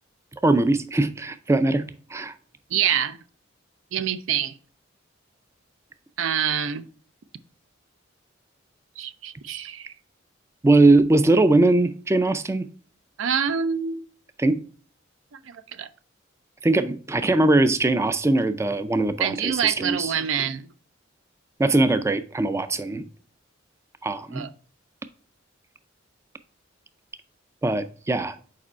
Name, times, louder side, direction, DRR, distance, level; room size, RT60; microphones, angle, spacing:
voice 1, 0.4-2.3 10.6-12.7 14.4-14.6 16.6-20.1 21.6-23.1 24.0-24.5 27.6-28.4, right 2 dB, 15° right, 0.3 m, -21 dB
voice 2, 2.7-3.2 3.9-4.5 6.2-6.9 9.0-9.9 13.2-14.0 15.3-15.9 19.2-20.7 24.3-24.5, right 8 dB, 80° right, 0.5 m, -26 dB
4.9 x 4.5 x 4.3 m
head